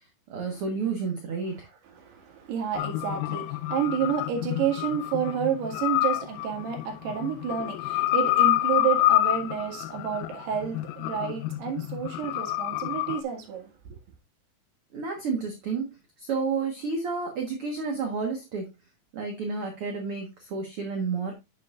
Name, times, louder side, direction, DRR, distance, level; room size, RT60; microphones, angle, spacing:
voice 1, 0.3-1.7 14.9-15.9 16.2-18.7 19.1-21.3, right 4 dB, 65° right, 1.4 m, -30 dB
voice 2, 2.0-14.0, right 8 dB, 80° right, 3.8 m, -30 dB
sound 1, 2.8-13.2, left 15 dB, 80° left, 2.3 m, -28 dB
9.2 x 7.4 x 2.4 m
omnidirectional pair, 4.6 m